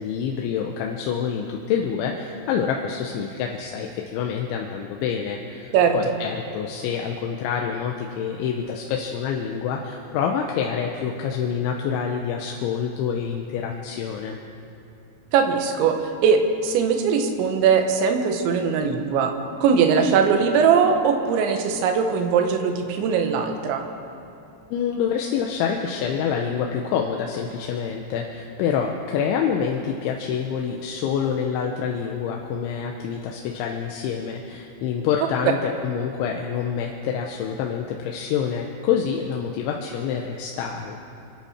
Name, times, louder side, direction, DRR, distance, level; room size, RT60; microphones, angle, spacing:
voice 1, 0.0-14.4 24.7-41.0, left 7 dB, 80° left, 1 dB, 3.0 m, -27 dB
voice 2, 5.7-6.1 15.3-16.0 16.2-19.3 19.6-23.8, right 6 dB, 75° right, 4 dB, 3.3 m, -20 dB
29.0 x 11.0 x 4.3 m, 2.8 s
omnidirectional pair, 5.9 m